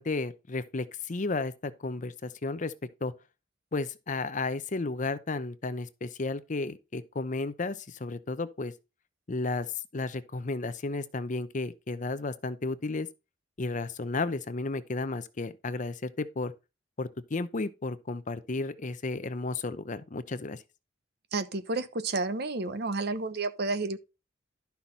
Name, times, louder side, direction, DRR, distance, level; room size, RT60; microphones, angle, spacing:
voice 1, 0.0-2.7 3.0-3.1 3.7-8.7 9.3-13.1 13.6-16.5 17.0-20.6, left 3 dB, 45° left, 0.7 m, -33 dB
voice 2, 21.3-24.0, right 3 dB, 60° right, 1.0 m, -31 dB
12.0 x 5.8 x 4.1 m
head